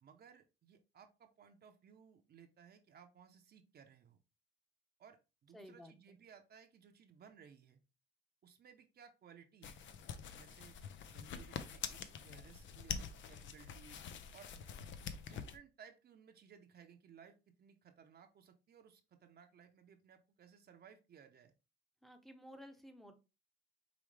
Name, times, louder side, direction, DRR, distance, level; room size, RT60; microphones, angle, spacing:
voice 1, 0.0-4.2 5.0-7.8 8.4-9.8 10.3-10.8 11.1-14.0 14.3-14.5 15.1-21.5, right 7 dB, 55° right, 5 dB, 0.8 m, -61 dB
voice 2, 5.5-6.2 22.0-23.1, equal, ahead, 7 dB, 0.8 m, -55 dB
sound 1, 9.6-15.6, left 7 dB, 70° left, 0.6 m, -46 dB
5.1 x 3.1 x 3.2 m, 0.28 s
cardioid pair, 90°, 20 cm